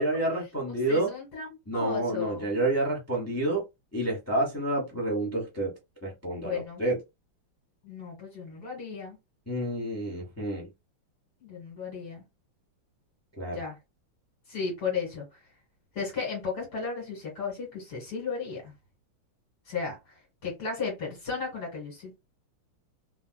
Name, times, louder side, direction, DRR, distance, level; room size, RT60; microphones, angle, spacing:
voice 1, 0.0-1.1 1.7-3.6 3.9-5.7 6.0-7.0 9.5-10.7 13.4-13.6, right 2 dB, 20° left, 0.4 m, -29 dB
voice 2, 0.9-2.5 6.4-6.8 7.8-9.2 11.4-12.2 13.5-13.8 14.5-15.4 15.9-18.7 19.7-22.2, left 5 dB, 50° left, 2.0 m, -35 dB
3.4 x 2.6 x 2.2 m
omnidirectional pair, 2.3 m